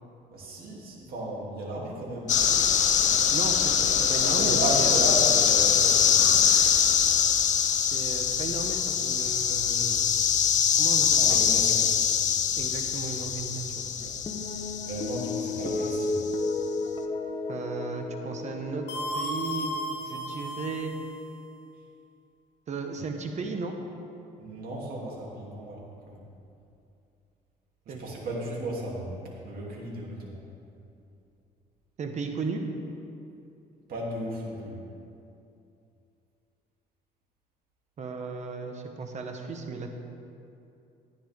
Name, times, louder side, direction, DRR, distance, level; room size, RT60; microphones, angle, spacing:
voice 1, 0.3-2.4 4.3-6.4 11.2-11.9 13.9-14.1 14.5-16.2 24.4-26.2 27.8-30.4 33.9-34.8, right 1 dB, 60° right, -3 dB, 2.9 m, -35 dB
sound 1, 2.3-16.3, left 8 dB, 45° left, 0.7 m, -23 dB
voice 2, 3.3-5.2 7.9-10.1 10.7-11.4 12.6-13.9 17.5-20.9 22.7-23.7 27.9-28.0 28.4-28.6 32.0-32.6 38.0-39.9, right 4 dB, 45° right, 4 dB, 1.1 m, -35 dB
sound 2, 14.3-20.8, left 3 dB, 30° left, 1.1 m, -34 dB
sound 3, 18.9-21.2, equal, 75° left, 1.5 m, -34 dB
14.0 x 9.8 x 3.6 m, 2.6 s
cardioid pair, 110°, 17 cm